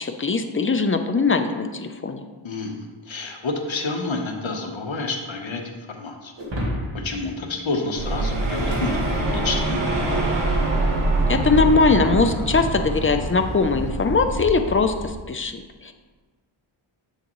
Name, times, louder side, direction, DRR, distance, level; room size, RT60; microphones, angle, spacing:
voice 1, 0.0-2.2 11.3-15.9, left 4 dB, 25° left, 6 dB, 0.6 m, -21 dB
voice 2, 2.4-6.3 6.9-10.3, left 3 dB, 65° left, 3 dB, 1.1 m, -29 dB
Shatter, 6.4-9.9, equal, 60° right, 1.7 m, -34 dB
sound 1, 8.0-15.1, right 2 dB, 85° right, 2.1 m, -24 dB
7.7 x 6.5 x 3.1 m, 1.3 s
wide cardioid pair, 60°, 50 cm